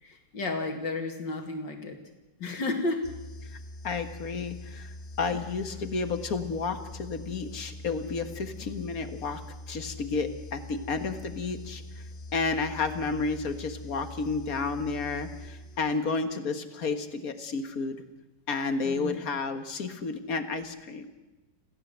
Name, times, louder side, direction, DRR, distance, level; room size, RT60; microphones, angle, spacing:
voice 1, 0.0-2.0 2.4-3.1 18.8-19.2, left 2 dB, 80° left, 5 dB, 3.0 m, -32 dB
sound 1, 3.0-16.2, left 1 dB, 35° left, 1.1 m, -43 dB
voice 2, 3.8-9.4 9.7-11.8 12.3-18.0 18.5-21.2, left 4 dB, 55° left, 9 dB, 1.9 m, -31 dB
27.5 x 15.5 x 8.1 m, 1.1 s
omnidirectional pair, 1.9 m